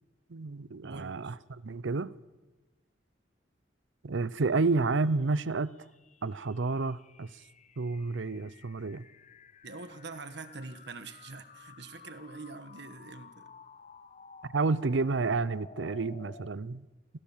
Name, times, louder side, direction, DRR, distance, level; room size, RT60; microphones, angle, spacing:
voice 1, 0.3-1.4 1.6-2.1 4.0-5.7 6.2-7.3 7.8-9.0 14.5-16.9, right 3 dB, 80° right, 0.7 m, -30 dB
voice 2, 0.8-1.4 9.6-13.5, right 3 dB, 65° right, 1.5 m, -44 dB
sound 1, 4.6-16.5, left 5 dB, 40° left, 0.8 m, -54 dB
27.5 x 16.5 x 7.3 m
head